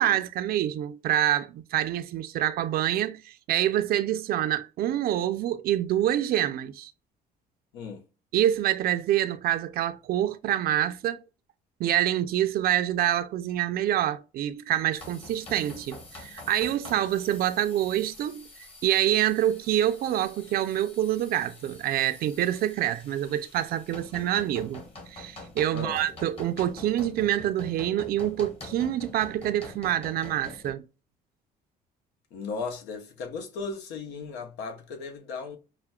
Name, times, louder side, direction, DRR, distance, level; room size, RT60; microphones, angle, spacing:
voice 1, 0.0-6.9 8.3-11.2 11.8-18.5 18.8-24.8 25.1-30.8, right 12 dB, 65° right, 0.5 m, -26 dB
voice 2, 7.7-8.0 25.7-26.0 32.3-35.6, left 4 dB, 85° left, 0.9 m, -36 dB
sound 1, 14.9-30.7, left 2 dB, 35° left, 1.3 m, -46 dB
5.8 x 2.2 x 2.3 m
cardioid pair, 110°, 17 cm